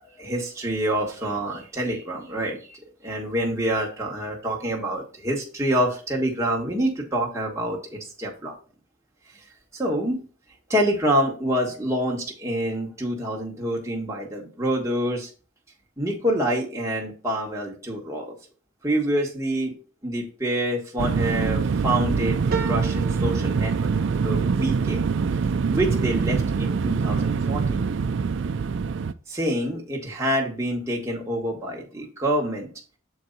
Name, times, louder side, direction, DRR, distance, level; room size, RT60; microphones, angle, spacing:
voice 1, 0.2-8.5 9.3-9.4 9.7-10.2 10.7-15.3 16.0-18.3 18.8-19.7 20.0-23.9 24.2-25.0 25.7-27.9 29.3-32.7, right 1 dB, 15° right, -2 dB, 1.5 m, -27 dB
sound 1, 21.0-29.1, right 5 dB, 65° right, 0.4 m, -24 dB
sound 2, 22.5-27.3 27.8-28.5 28.8-28.9, right 6 dB, 45° right, 1.3 m, -38 dB
7.0 x 4.6 x 3.9 m, 0.37 s
head